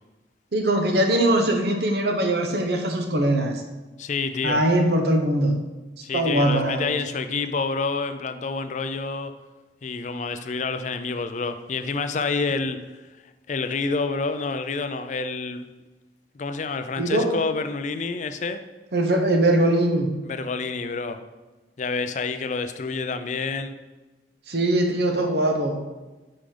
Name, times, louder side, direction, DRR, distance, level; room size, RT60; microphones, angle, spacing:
voice 1, 0.5-3.6 4.4-5.6 6.1-7.0 17.0-17.3 18.9-20.1 24.5-25.8, right 1 dB, 65° right, 4 dB, 0.9 m, -21 dB
voice 2, 4.0-4.6 6.0-9.3 9.8-12.8 13.5-15.7 16.3-18.6 20.2-21.2 21.8-23.7, left 4 dB, 45° left, 9 dB, 0.4 m, -28 dB
5.7 x 4.9 x 5.0 m, 1.2 s
head